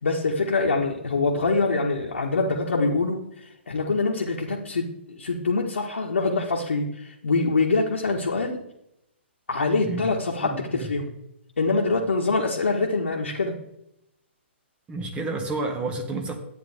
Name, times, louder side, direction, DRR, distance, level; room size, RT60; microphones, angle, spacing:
voice 1, 0.0-3.2 3.7-4.9 5.2-8.6 9.5-11.1 11.6-13.6, left 3 dB, 80° left, -2 dB, 1.6 m, -24 dB
voice 2, 10.4-10.9 14.9-16.4, right 2 dB, 15° right, 5 dB, 1.7 m, -30 dB
12.0 x 9.3 x 3.6 m, 0.81 s
hypercardioid pair, 135°, 7 cm